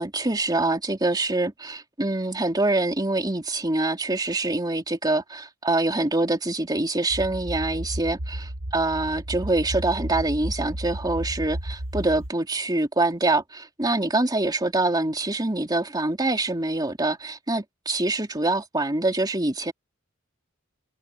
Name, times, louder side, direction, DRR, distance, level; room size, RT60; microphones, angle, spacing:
voice 1, 0.0-19.7, right 2 dB, 20° right, 3.0 m, -25 dB
sound 1, 7.1-12.3, right 1 dB, 70° right, 1.5 m, -33 dB
head